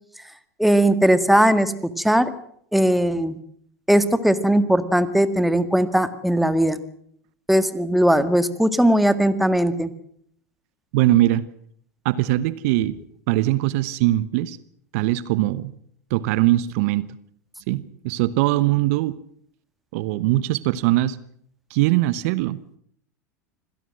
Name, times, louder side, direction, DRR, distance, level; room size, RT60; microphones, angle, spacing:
voice 1, 0.6-2.3 2.7-3.4 3.9-6.8 7.5-9.9, right 1 dB, ahead, 12 dB, 1.8 m, -19 dB
voice 2, 10.9-11.4 12.0-13.0 13.3-14.6 14.9-15.7 16.1-17.1 17.7-19.2 19.9-21.2 21.7-22.6, right 16 dB, 60° right, 18 dB, 1.0 m, -21 dB
25.5 x 17.0 x 7.7 m, 0.66 s
hypercardioid pair, 90°, 9 cm